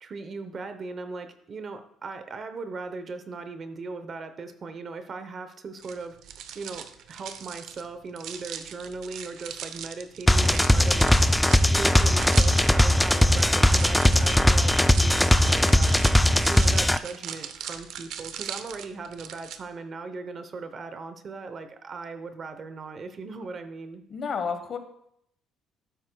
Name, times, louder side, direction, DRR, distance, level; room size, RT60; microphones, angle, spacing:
voice 1, 0.0-6.2 6.5-11.2 11.6-16.0 16.5-24.0, right 4 dB, 40° right, 9 dB, 0.8 m, -38 dB
sound 1, 5.8-19.6, right 9 dB, 70° right, 0.7 m, -39 dB
sound 2, 10.3-17.0, left 1 dB, 5° left, 0.3 m, -19 dB
voice 2, 24.1-24.8, left 5 dB, 45° left, 8 dB, 1.2 m, -30 dB
12.5 x 9.7 x 2.3 m, 0.72 s
cardioid pair, 125°, 0 cm